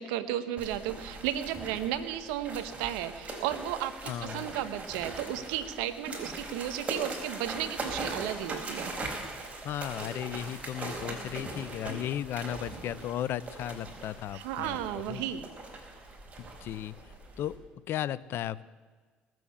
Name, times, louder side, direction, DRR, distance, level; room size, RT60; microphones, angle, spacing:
voice 1, 0.0-8.9 14.3-15.5, right 11 dB, 85° right, 12 dB, 1.0 m, -34 dB
sound 1, 0.6-17.6, right 2 dB, 30° right, 4.4 m, -40 dB
voice 2, 4.0-4.5 9.6-14.8 15.1-15.2 16.4-17.6 17.9-18.6, left 11 dB, 65° left, 19 dB, 0.6 m, -35 dB
19.0 x 7.7 x 8.4 m, 1.4 s
supercardioid pair, 70°, 4 cm